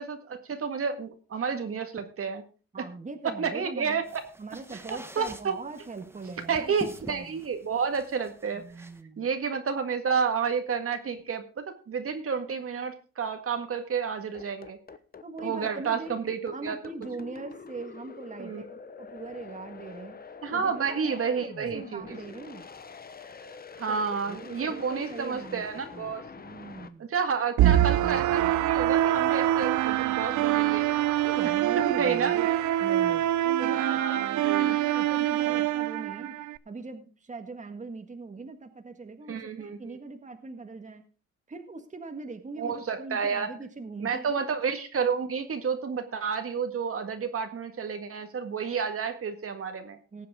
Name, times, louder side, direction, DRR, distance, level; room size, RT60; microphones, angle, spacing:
voice 1, 0.0-2.4 2.8-2.9 3.4-4.2 4.9-5.5 6.5-8.9 9.2-14.8 15.4-16.8 18.4-18.6 20.4-22.2 23.8-26.2 27.0-30.9 31.9-32.4 33.7-34.8 35.6-35.7 39.3-39.8 42.6-43.5 44.0-50.0, right 6 dB, 50° right, 7 dB, 1.8 m, -30 dB
voice 2, 2.7-4.0 4.4-7.4 8.5-9.3 15.2-16.1 16.5-20.2 20.5-22.7 23.9-25.6 25.9-27.1 31.2-32.5 32.8-34.3 34.6-41.0 41.5-44.4 50.1-50.3, right 3 dB, 25° right, 6 dB, 1.7 m, -41 dB
sound 1, 4.0-9.0, right 1 dB, 10° right, 1.2 m, -47 dB
sound 2, 14.3-26.9, left 5 dB, 30° left, 1.1 m, -45 dB
sound 3, 27.6-36.6, right 13 dB, 75° right, 0.7 m, -25 dB
18.5 x 7.5 x 3.7 m, 0.36 s
cardioid pair, 90°, 30 cm